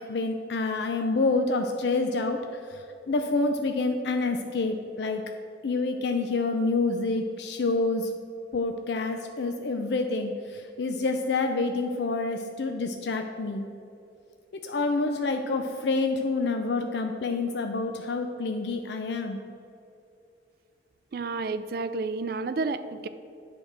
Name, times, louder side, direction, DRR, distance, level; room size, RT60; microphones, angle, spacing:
voice 1, 0.0-5.2 5.6-8.1 8.5-13.7 14.6-19.4, left 3 dB, 65° left, 5 dB, 0.5 m, -28 dB
voice 2, 21.1-23.1, right 3 dB, 55° right, 12 dB, 0.4 m, -30 dB
8.6 x 4.7 x 6.5 m, 2.6 s
head